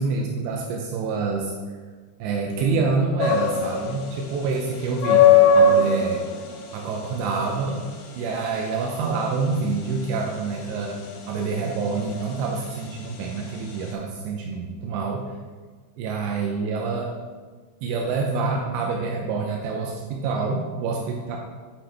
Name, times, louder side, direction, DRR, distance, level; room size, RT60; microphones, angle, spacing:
voice 1, 0.0-1.5 2.2-6.2 6.7-7.8 8.2-15.2 16.0-17.1 17.8-21.4, right 4 dB, 90° right, 1 dB, 2.5 m, -27 dB
sound 1, 3.2-13.9, left 5 dB, 80° left, 3.4 m, -22 dB
8.7 x 5.8 x 3.3 m, 1.5 s
omnidirectional pair, 5.8 m